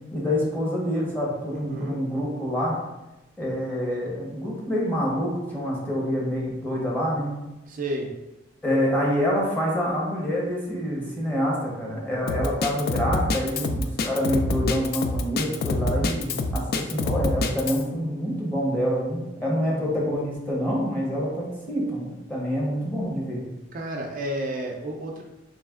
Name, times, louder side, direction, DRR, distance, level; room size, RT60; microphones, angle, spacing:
voice 1, 0.1-2.8 3.4-7.3 8.6-23.4, equal, 10° left, -4 dB, 1.0 m, -26 dB
voice 2, 1.5-2.0 7.7-8.1 13.6-13.8 19.6-20.0 23.7-25.2, right 1 dB, 45° right, 1 dB, 0.4 m, -32 dB
Drum kit, 12.3-17.8, left 2 dB, 50° left, 0.3 m, -26 dB
3.2 x 3.0 x 3.6 m, 0.97 s
head